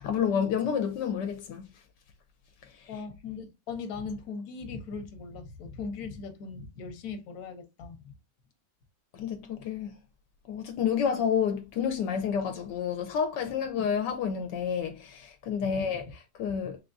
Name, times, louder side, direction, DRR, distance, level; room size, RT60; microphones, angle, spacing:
voice 1, 0.0-1.7 9.1-10.0 10.5-16.1 16.4-16.8, left 7 dB, 80° left, 1.3 m, -29 dB
voice 2, 2.9-8.1 15.6-16.0, left 4 dB, 60° left, 1.3 m, -39 dB
3.6 x 3.5 x 2.6 m
omnidirectional pair, 1.9 m